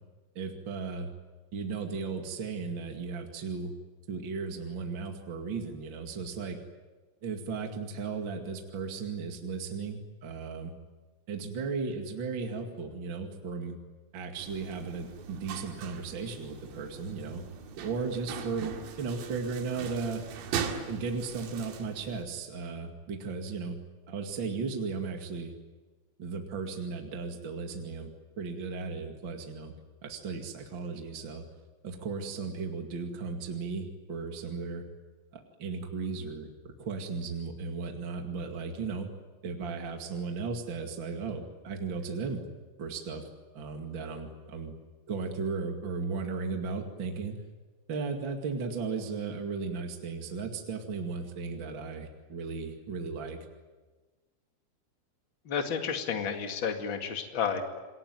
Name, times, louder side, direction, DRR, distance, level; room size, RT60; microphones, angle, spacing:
voice 1, 0.3-1.1 1.5-3.7 4.1-6.6 7.2-10.7 11.3-13.8 14.1-17.4 17.8-20.2 20.9-23.8 24.1-25.5 26.2-29.7 30.0-31.4 31.8-34.8 35.3-36.5 36.8-39.1 39.4-42.4 42.8-43.3 43.5-44.7 45.1-47.3 47.9-53.4, right 4 dB, 50° right, 3 dB, 1.4 m, -36 dB
sound 1, 14.4-22.2, right 7 dB, 85° right, 4.7 m, -40 dB
voice 2, 55.4-57.6, left 6 dB, 55° left, 5 dB, 1.3 m, -31 dB
28.0 x 21.5 x 9.3 m, 1.3 s
omnidirectional pair, 5.9 m